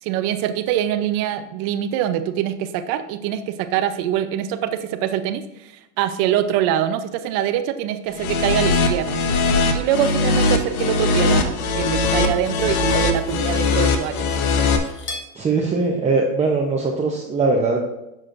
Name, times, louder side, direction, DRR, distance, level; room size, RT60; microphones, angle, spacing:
voice 1, 0.0-9.2 9.7-14.3, right 10 dB, 55° right, 11 dB, 0.7 m, -24 dB
sound 1, 8.1-14.8, left 3 dB, 85° left, 1.1 m, -20 dB
Cutlery silverware, 12.1-15.3, left 2 dB, 30° left, 1.4 m, -39 dB
voice 2, 15.3-17.8, right 3 dB, 15° right, -1 dB, 0.8 m, -20 dB
9.8 x 6.3 x 2.6 m, 0.91 s
supercardioid pair, 120°, 42 cm